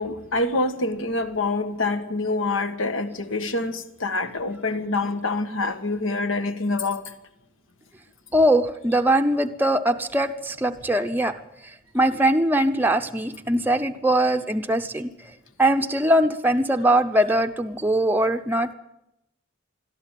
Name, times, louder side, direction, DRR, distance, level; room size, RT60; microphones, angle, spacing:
voice 1, 0.0-7.0, left 2 dB, 75° left, 1.6 m, -26 dB
voice 2, 8.3-11.3 11.9-15.1 15.6-18.7, right 1 dB, 10° right, 0.7 m, -21 dB
22.0 x 13.5 x 9.2 m
head